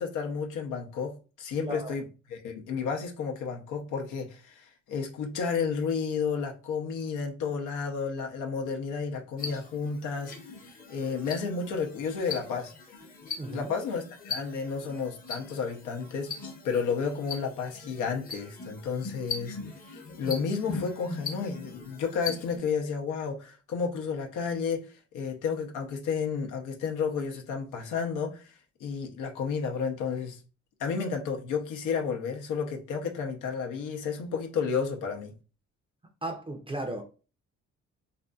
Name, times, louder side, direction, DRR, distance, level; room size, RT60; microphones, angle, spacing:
voice 1, 0.0-2.0 2.4-10.3 10.6-12.7 13.5-16.3 16.6-19.6 19.9-24.9 25.1-28.5 28.8-30.4 30.8-35.3, left 5 dB, 85° left, 0.7 m, -32 dB
voice 2, 1.6-1.9 13.4-13.7 36.2-37.0, right 1 dB, 20° right, 0.5 m, -35 dB
sound 1, 9.4-22.6, left 4 dB, 30° left, 0.7 m, -40 dB
2.6 x 2.5 x 2.3 m
cardioid pair, 90°, 30 cm